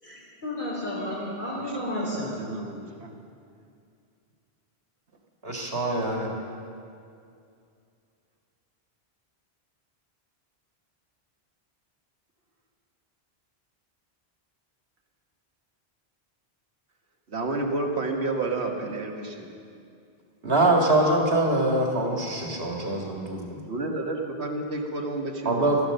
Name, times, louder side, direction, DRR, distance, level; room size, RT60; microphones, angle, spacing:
voice 1, 0.0-2.4, left 1 dB, 50° left, -4 dB, 4.2 m, -32 dB
voice 2, 1.9-3.1 17.3-19.5 23.7-25.7, right 2 dB, 85° right, 2 dB, 1.7 m, -30 dB
voice 3, 5.4-6.3 20.4-23.6 25.5-25.8, right 2 dB, 65° right, 0 dB, 2.2 m, -24 dB
14.5 x 11.5 x 6.7 m, 2.4 s
omnidirectional pair, 1.1 m